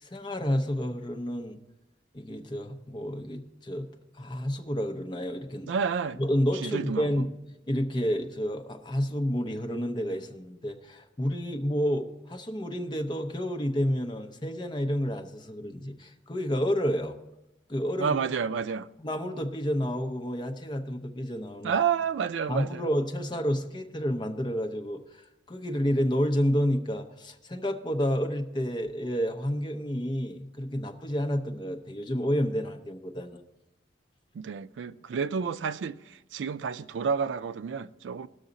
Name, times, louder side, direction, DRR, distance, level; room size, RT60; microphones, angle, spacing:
voice 1, 0.0-1.6 2.1-3.9 4.2-5.7 6.2-7.3 7.7-17.2 17.7-18.2 19.0-21.7 22.5-33.4, equal, 25° left, 0.8 m, -30 dB
voice 2, 5.7-6.2 6.5-7.2 18.0-18.9 21.6-22.8 34.3-38.3, right 6 dB, 80° right, 0.4 m, -30 dB
19.0 x 6.3 x 3.9 m
head